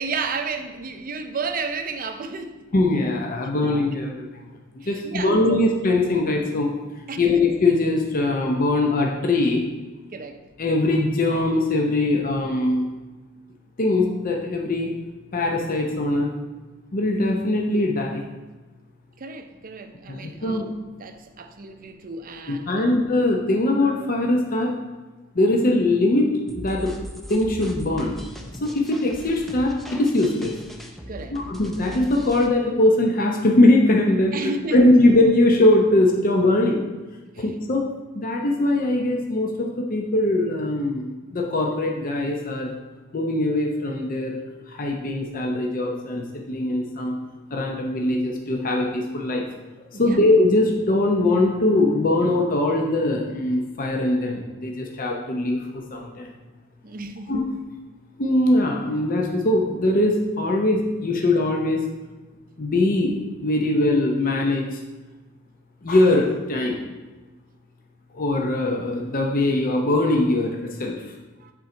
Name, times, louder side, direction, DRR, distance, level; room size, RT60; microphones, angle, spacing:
voice 1, 0.0-2.5 3.6-4.2 4.8-5.6 7.1-7.4 10.1-10.4 19.2-20.7 21.0-23.0 31.1-31.4 34.3-34.8 37.3-37.5 49.9-50.2 56.8-57.3 71.4-71.5, right 4 dB, 45° right, 0.5 m, -32 dB
voice 2, 2.7-4.5 4.9-6.7 7.2-9.6 10.6-12.9 13.8-14.9 15.3-16.3 16.9-18.2 20.1-20.7 22.5-24.7 25.3-26.9 27.3-28.2 28.6-30.5 31.3-36.8 37.4-37.8 38.1-42.8 43.1-44.4 44.7-47.2 47.5-49.4 50.0-56.3 57.3-57.4 58.2-61.8 62.6-63.1 63.4-64.8 65.8-66.8 68.1-71.0, left 2 dB, 45° left, 0.7 m, -21 dB
sound 1, 26.5-32.5, equal, ahead, 0.5 m, -39 dB
8.5 x 3.8 x 4.4 m
head